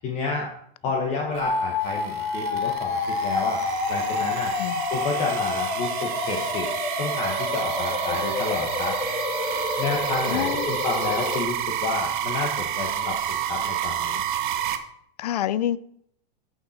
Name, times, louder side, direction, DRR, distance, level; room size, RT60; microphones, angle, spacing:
voice 1, 0.0-0.5 0.8-3.6 3.9-4.5 4.9-6.7 7.0-9.0 9.8-14.2, left 4 dB, 20° left, 1.2 m, -30 dB
sound 1, 1.3-14.8, right 10 dB, 50° right, 1.1 m, -30 dB
sound 2, 1.4-11.4, left 4 dB, 75° left, 2.3 m, -29 dB
voice 2, 10.3-10.7 15.2-15.8, left 12 dB, 40° left, 0.4 m, -26 dB
13.5 x 6.6 x 4.2 m
supercardioid pair, 175°, 33 cm